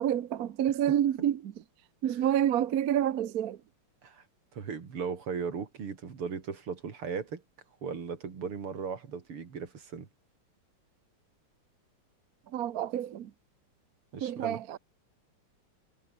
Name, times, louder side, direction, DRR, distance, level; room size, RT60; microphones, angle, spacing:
voice 1, 0.0-1.4 2.0-3.6 12.5-13.3 14.2-14.8, right 10 dB, 55° right, 1.1 m, -28 dB
voice 2, 4.5-7.4 7.8-10.1 14.1-14.6, right 6 dB, 80° right, 3.7 m, -37 dB
omnidirectional pair, 2.4 m